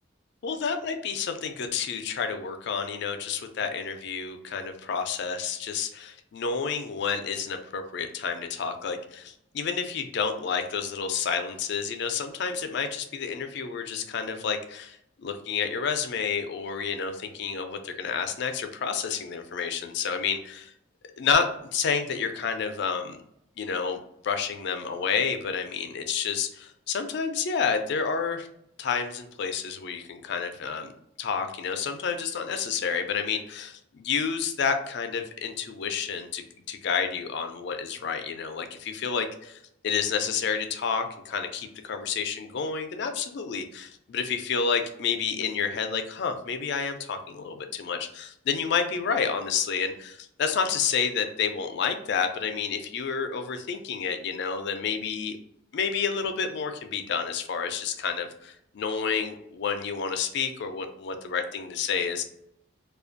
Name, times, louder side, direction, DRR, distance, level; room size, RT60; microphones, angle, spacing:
voice 1, 0.4-20.7 21.2-23.2 23.6-28.5 28.8-30.9 31.2-55.4 55.7-62.2, left 6 dB, 60° left, 7 dB, 0.4 m, -30 dB
2.4 x 2.2 x 2.5 m, 0.76 s
head